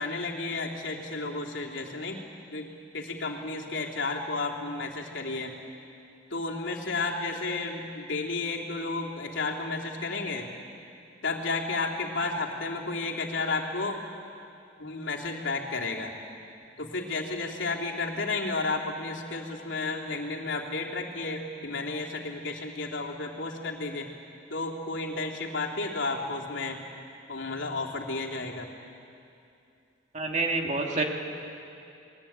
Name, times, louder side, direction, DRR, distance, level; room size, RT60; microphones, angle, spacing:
voice 1, 0.0-2.2 2.5-5.5 6.3-10.5 11.2-14.0 14.8-16.1 16.8-24.2 24.5-26.8 27.3-28.7, left 3 dB, 70° left, -1 dB, 3.2 m, -32 dB
voice 2, 30.1-31.0, right 3 dB, 40° right, 1 dB, 2.6 m, -27 dB
29.5 x 21.5 x 8.9 m, 2.6 s
head